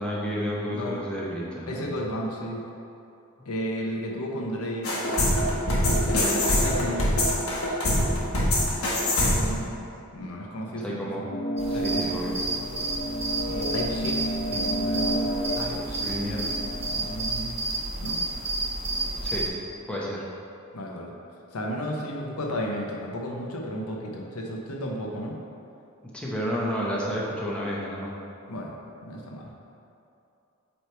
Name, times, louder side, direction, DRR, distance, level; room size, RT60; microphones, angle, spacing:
voice 1, 0.0-1.9 10.8-11.3 11.7-12.4 16.0-16.5 19.2-19.5 19.9-20.2 26.1-28.1, equal, 5° left, -6 dB, 0.9 m, -31 dB
voice 2, 0.7-1.0 1.7-2.6 3.5-4.9 5.8-7.2 9.2-9.7 10.1-11.3 11.7-12.1 13.5-14.2 14.5-15.3 15.5-16.3 16.8-17.6 18.0-18.2 20.7-21.1 21.5-25.4 28.5-28.7 29.0-29.5, equal, 85° left, -1 dB, 0.9 m, -33 dB
sound 1, 4.8-9.6, left 1 dB, 70° left, 1.2 m, -23 dB
sound 2, 11.3-17.1, right 1 dB, 50° left, 0.7 m, -31 dB
sound 3, 11.6-19.5, right 2 dB, 30° right, 0.8 m, -31 dB
7.9 x 3.3 x 4.5 m, 2.7 s
head